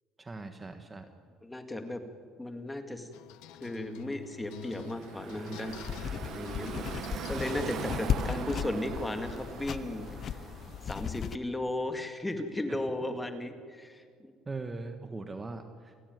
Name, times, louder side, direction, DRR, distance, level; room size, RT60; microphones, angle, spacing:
voice 1, 0.2-1.1 14.4-16.0, right 3 dB, 20° right, 7 dB, 1.4 m, -40 dB
voice 2, 1.4-2.0 2.4-3.1 3.6-5.7 6.3-6.8 7.3-10.1 10.9-14.3, left 1 dB, 10° left, 6 dB, 2.1 m, -35 dB
sound 1, 3.1-10.7, left 13 dB, 85° left, 1.0 m, -49 dB
Car passing by / Traffic noise roadway noise, 4.5-11.4, right 8 dB, 50° right, 1.5 m, -41 dB
sound 2, 5.7-11.4, left 8 dB, 40° left, 0.5 m, -36 dB
28.5 x 16.0 x 9.4 m, 2.1 s
cardioid pair, 140°, 0 cm